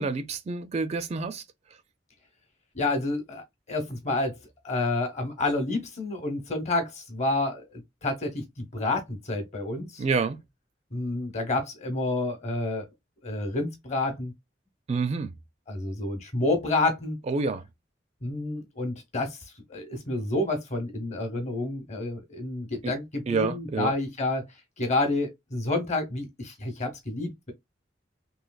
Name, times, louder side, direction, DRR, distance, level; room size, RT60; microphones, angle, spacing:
voice 1, 0.0-1.4 10.0-10.4 14.9-15.3 17.3-17.6 22.8-22.9 23.3-23.9, right 4 dB, 35° right, 0.4 m, -28 dB
voice 2, 2.7-4.3 4.6-10.0 10.9-12.9 13.2-14.3 15.7-17.2 18.2-19.4 19.7-24.5 24.8-27.5, left 2 dB, 40° left, 0.9 m, -29 dB
3.1 x 2.8 x 2.3 m
head